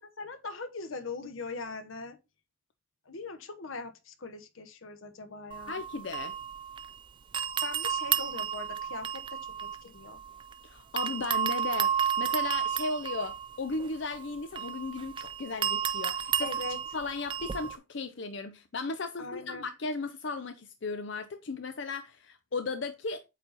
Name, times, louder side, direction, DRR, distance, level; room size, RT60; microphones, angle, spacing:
voice 1, 0.0-2.2 3.0-5.8 7.6-10.2 16.4-16.8 19.2-19.7, left 3 dB, 85° left, 1.1 m, -41 dB
sound 1, 5.5-7.0 7.3-10.6 11.0-17.8, right 8 dB, 25° right, 0.3 m, -32 dB
voice 2, 5.7-6.3 10.6-16.5 16.9-23.2, left 3 dB, 65° left, 0.6 m, -36 dB
8.3 x 4.1 x 4.1 m
head